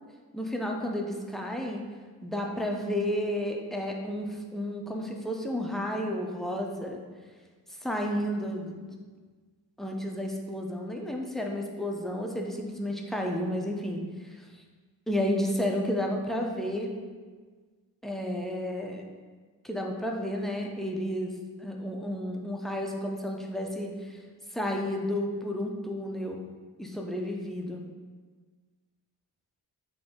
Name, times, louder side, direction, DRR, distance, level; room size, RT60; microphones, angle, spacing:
voice 1, 0.3-1.8 2.2-7.0 7.8-8.9 9.8-14.4 15.1-16.9 18.0-19.0 19.6-21.3 21.6-23.9 24.5-26.4 26.8-27.8, left 1 dB, ahead, 0 dB, 0.5 m, -31 dB
5.0 x 2.6 x 3.6 m, 1.5 s
cardioid pair, 90°, 37 cm